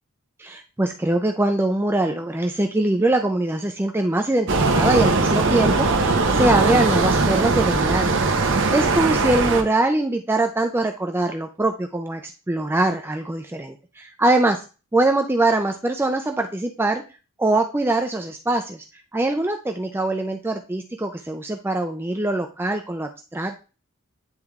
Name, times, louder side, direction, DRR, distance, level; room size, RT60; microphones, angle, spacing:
voice 1, 0.4-14.6 14.9-17.0 17.4-18.8 19.1-23.6, right 2 dB, 10° right, 5 dB, 0.4 m, -23 dB
sound 1, 4.5-9.6, right 3 dB, 55° right, 0.9 m, -20 dB
9.6 x 3.4 x 3.5 m, 0.33 s
head